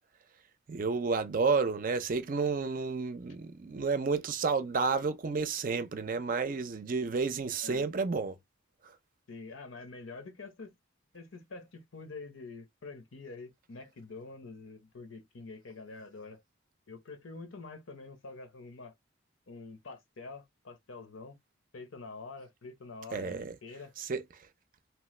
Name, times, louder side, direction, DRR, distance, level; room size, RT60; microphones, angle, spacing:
voice 1, 0.7-8.4 23.1-23.5 24.0-24.2, right 4 dB, 45° right, 0.4 m, -31 dB
voice 2, 9.3-10.7 11.1-16.4 16.9-18.9 19.5-21.4 21.7-23.9, left 3 dB, 90° left, 0.9 m, -46 dB
3.0 x 2.1 x 3.1 m
head